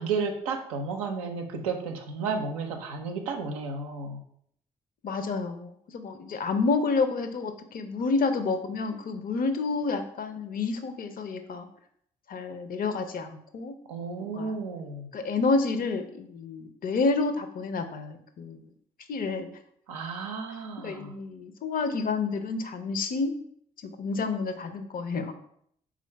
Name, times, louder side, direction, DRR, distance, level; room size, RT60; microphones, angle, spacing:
voice 1, 0.0-4.2 13.9-15.1 19.9-21.2, right 4 dB, 90° right, 4 dB, 0.5 m, -33 dB
voice 2, 5.0-11.7 12.3-13.8 14.2-14.6 15.1-18.6 19.1-19.5 20.8-23.3 23.8-25.3, left 4 dB, 55° left, 8 dB, 0.6 m, -29 dB
3.7 x 2.5 x 4.4 m, 0.69 s
hypercardioid pair, 40°, 18 cm